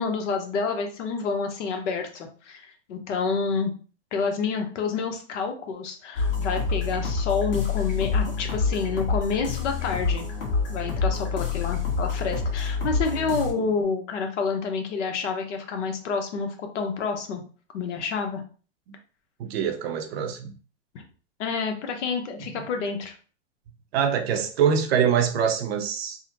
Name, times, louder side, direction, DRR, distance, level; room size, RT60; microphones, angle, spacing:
voice 1, 0.0-3.7 4.1-10.3 10.7-17.4 17.7-18.4 20.9-21.0 21.4-23.2, left 5 dB, 65° left, 4 dB, 0.9 m, -28 dB
sound 1, 6.2-13.5, left 5 dB, 45° left, 1.5 m, -27 dB
voice 2, 19.4-20.5 22.4-22.5 23.9-26.2, right 7 dB, 50° right, 6 dB, 0.6 m, -24 dB
3.6 x 2.1 x 2.8 m, 0.39 s
hypercardioid pair, 135°, 39 cm